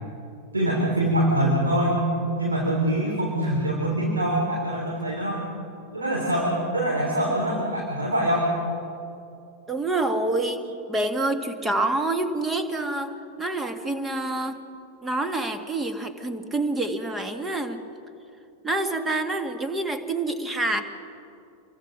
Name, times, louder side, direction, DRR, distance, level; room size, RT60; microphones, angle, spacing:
voice 1, 0.5-2.0 2.4-5.5 5.9-8.5, right 1 dB, 75° right, -2 dB, 4.1 m, -24 dB
voice 2, 9.7-14.6 15.0-17.8 18.6-20.8, right 2 dB, 10° right, 7 dB, 2.0 m, -27 dB
28.5 x 23.0 x 5.1 m, 2.6 s
figure-of-eight pair, 90°, 0 cm